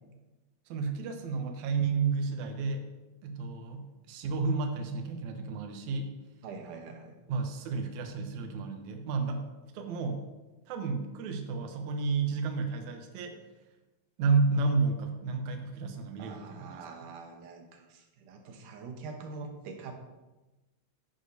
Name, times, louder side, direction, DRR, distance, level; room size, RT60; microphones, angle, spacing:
voice 1, 0.7-2.9 3.2-6.1 7.3-9.5 9.7-10.2 10.7-13.4 14.2-16.9, right 4 dB, 75° right, 5 dB, 2.2 m, -31 dB
voice 2, 6.4-7.2 16.2-19.9, right 4 dB, 90° right, 3 dB, 2.6 m, -44 dB
11.0 x 9.6 x 2.7 m, 1.1 s
omnidirectional pair, 3.6 m